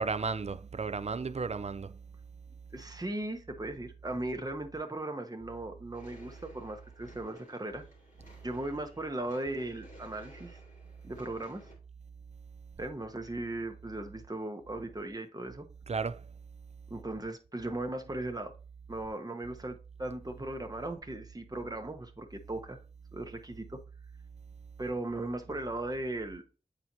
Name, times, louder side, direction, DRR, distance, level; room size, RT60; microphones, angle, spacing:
voice 1, 0.0-2.0 15.9-16.2, right 4 dB, 45° right, 0.4 m, -33 dB
voice 2, 2.7-7.8 8.4-10.6 11.0-11.6 12.8-15.6 16.9-18.5 18.9-22.8 23.1-23.8 24.8-26.4, right 2 dB, 25° right, 0.9 m, -37 dB
sound 1, 5.9-11.8, left 2 dB, 60° left, 2.7 m, -57 dB
7.9 x 4.4 x 2.7 m
wide cardioid pair, 50°, 15 cm